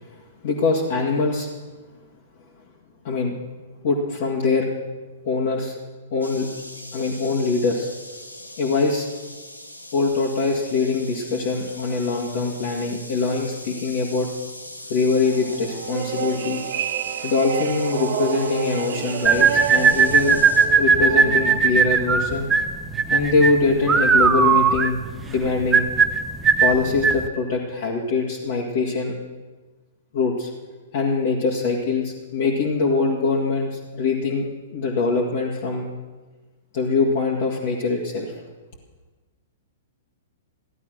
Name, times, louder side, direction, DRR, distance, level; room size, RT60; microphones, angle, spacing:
voice 1, 0.4-1.5 3.0-3.4 3.8-4.7 5.2-5.7 6.1-6.5 6.9-7.9 8.6-9.1 9.9-14.3 14.9-16.6 17.2-20.4 20.8-22.5 23.1-25.0 25.3-25.9 26.6-29.2 30.1-30.5 30.9-35.9 36.7-38.4, left 4 dB, 45° left, -3 dB, 2.1 m, -23 dB
sound 1, 6.2-20.7, left 1 dB, 85° left, 1.6 m, -40 dB
sound 2, 15.2-21.6, right 11 dB, 50° right, 0.6 m, -30 dB
sound 3, 19.2-27.3, right 5 dB, 15° right, 0.8 m, -18 dB
15.5 x 11.5 x 6.4 m, 1.3 s
figure-of-eight pair, 110°, 0 cm